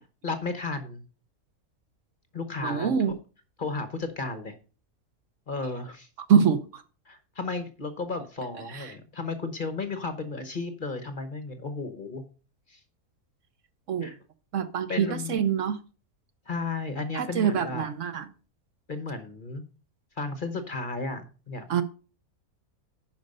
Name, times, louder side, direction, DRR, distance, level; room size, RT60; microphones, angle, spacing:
voice 1, 0.2-1.0 2.3-3.2 3.6-4.5 5.5-6.1 7.1-12.2 12.7-12.8 14.0-14.2 14.9-15.4 16.5-17.9 18.9-19.6 20.2-21.8, left 3 dB, 40° left, 0.9 m, -34 dB
voice 2, 2.6-3.1 6.3-6.8 8.7-8.8 13.9-14.1 14.5-15.8 17.1-18.2 21.7-21.8, right 7 dB, 60° right, 1.0 m, -24 dB
10.5 x 5.4 x 5.3 m
omnidirectional pair, 1.6 m